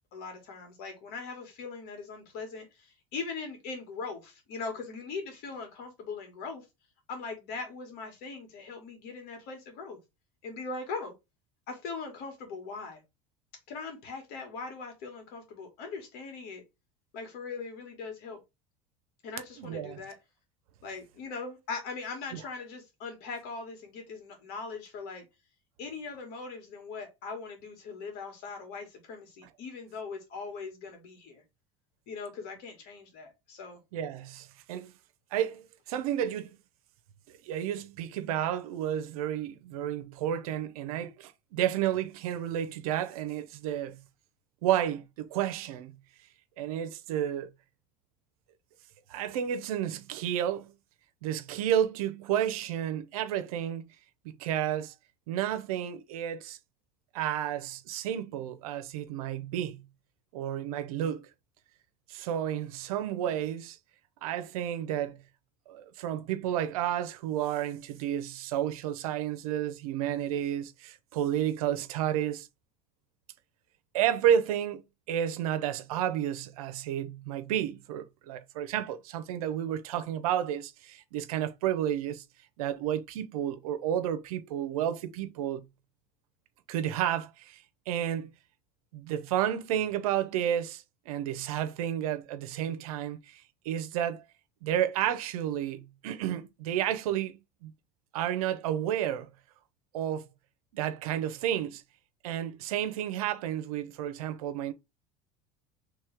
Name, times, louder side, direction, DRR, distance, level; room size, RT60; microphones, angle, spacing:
voice 1, 0.1-6.7 7.1-10.0 10.4-11.1 11.7-13.0 13.7-16.6 17.1-18.4 19.2-20.2 20.8-25.3 25.8-31.4 32.1-33.8, left 4 dB, 65° left, 2.0 m, -40 dB
voice 2, 19.6-20.0 22.3-22.4 33.9-34.9 35.3-36.6 37.4-44.0 44.6-46.0 46.6-47.5 49.1-50.7 51.2-53.9 54.2-54.9 55.3-56.6 57.1-59.8 60.3-61.3 62.1-63.8 64.2-65.2 65.7-72.5 73.9-74.8 75.1-82.2 82.6-85.6 86.7-88.3 88.9-94.2 94.6-97.7 98.1-99.3 99.9-100.3 100.7-101.8 102.2-104.7, right 10 dB, 90° right, 0.7 m, -31 dB
3.2 x 3.1 x 3.5 m
supercardioid pair, 105°, 18 cm